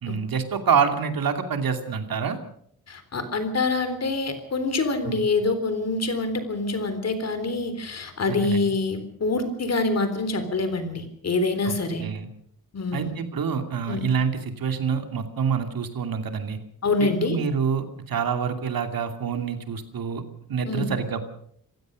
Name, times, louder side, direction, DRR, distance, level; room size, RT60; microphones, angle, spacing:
voice 1, 0.0-2.4 5.0-5.3 8.3-8.7 11.6-11.7 12.0-12.3 12.9-16.6 17.0-20.2 20.5-21.3, right 6 dB, 70° right, 7 dB, 2.8 m, -27 dB
voice 2, 2.9-12.0 12.7-13.1 13.9-14.0 16.8-17.4 20.7-20.9, left 3 dB, 45° left, 9 dB, 3.7 m, -26 dB
27.0 x 16.0 x 6.4 m, 0.67 s
wide cardioid pair, 160°, 36 cm